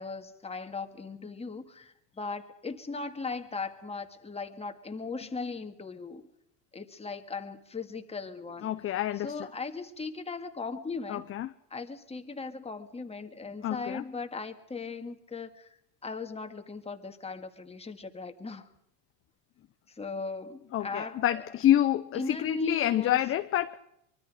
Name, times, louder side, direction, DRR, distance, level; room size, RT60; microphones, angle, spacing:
voice 1, 0.0-6.3 6.7-8.7 9.2-11.2 11.7-18.7 19.9-21.5 22.1-23.2, left 4 dB, 15° left, 2.0 m, -38 dB
voice 2, 8.6-9.5 11.1-11.5 13.6-14.0 20.7-23.8, left 12 dB, 30° left, 0.7 m, -27 dB
24.5 x 23.5 x 5.0 m
supercardioid pair, 120°, 46 cm